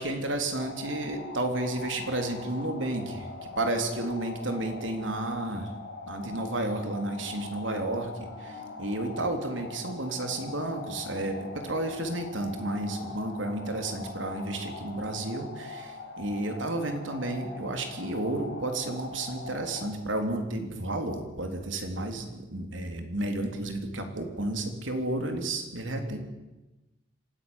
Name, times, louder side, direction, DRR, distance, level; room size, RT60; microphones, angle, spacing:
voice 1, 0.0-3.3 3.6-5.7 6.1-26.2, right 2 dB, 80° right, 5 dB, 3.6 m, -32 dB
sound 1, 0.5-19.9, left 3 dB, 80° left, 4.3 m, -42 dB
26.5 x 13.0 x 9.9 m, 1.1 s
head